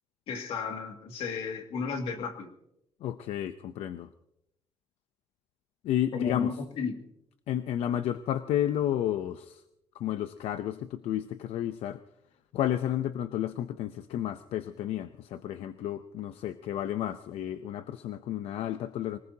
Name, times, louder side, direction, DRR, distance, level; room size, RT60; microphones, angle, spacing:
voice 1, 0.3-2.5 6.1-7.1, left 5 dB, 75° left, 4 dB, 2.3 m, -33 dB
voice 2, 3.0-4.1 5.8-6.5 7.5-9.6 9.9-12.0 12.5-19.2, left 11 dB, 90° left, 11 dB, 0.7 m, -32 dB
25.0 x 19.0 x 2.8 m, 0.82 s
cardioid pair, 155°, 10 cm